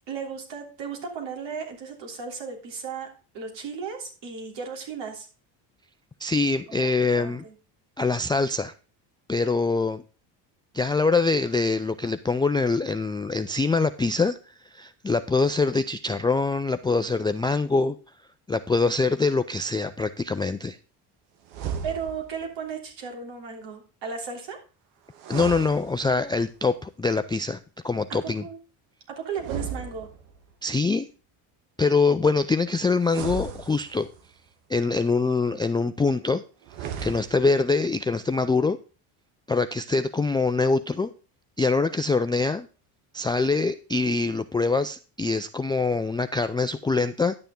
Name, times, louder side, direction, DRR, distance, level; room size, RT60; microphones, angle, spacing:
voice 1, 0.1-3.1 3.3-5.3 6.8-7.5 21.8-24.6 28.1-28.6 29.1-30.1, right 6 dB, 65° right, 2 dB, 3.3 m, -35 dB
voice 2, 6.2-7.4 8.0-8.7 9.3-10.0 10.7-14.4 14.7-18.0 18.5-20.8 25.3-27.6 27.8-28.4 30.6-31.1 31.8-34.1 34.7-36.4 36.8-38.8 39.5-41.1 41.6-42.7 43.1-47.4, left 3 dB, 10° left, 9 dB, 0.3 m, -24 dB
sound 1, 21.5-22.4 25.1-26.5 29.3-30.5 33.0-34.3 36.6-37.6, right 7 dB, 80° right, 1.5 m, -35 dB
10.5 x 6.8 x 3.7 m, 0.35 s
supercardioid pair, 85°, 47 cm